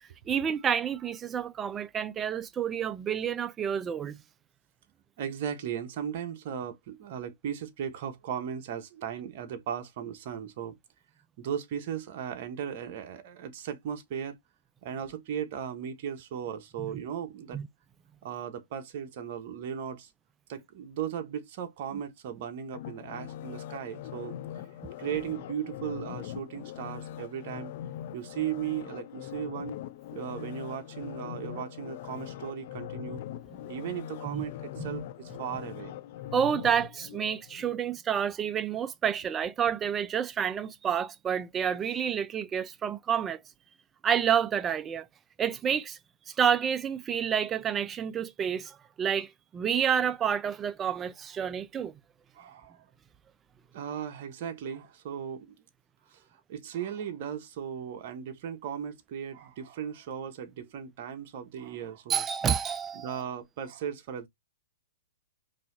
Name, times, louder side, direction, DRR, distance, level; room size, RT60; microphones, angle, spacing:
voice 1, 0.0-4.2 16.8-16.9 17.5-17.7 34.3-34.4 34.8-34.9 36.3-43.4 44.0-45.1 45.4-46.0 46.3-51.9 62.1-63.2, right 8 dB, 20° right, 0.4 m, -29 dB
voice 2, 5.2-10.8 11.4-14.3 14.8-17.6 18.2-20.1 20.5-24.4 25.0-27.7 28.1-29.8 30.1-33.2 33.7-35.9 52.3-52.8 53.7-55.6 56.1-62.2 62.9-64.3, right 8 dB, 50° right, 1.0 m, -37 dB
sound 1, 22.7-37.8 38.2-38.3, left 11 dB, 50° left, 0.4 m, -41 dB
3.9 x 2.8 x 2.6 m
hypercardioid pair, 140°, 0 cm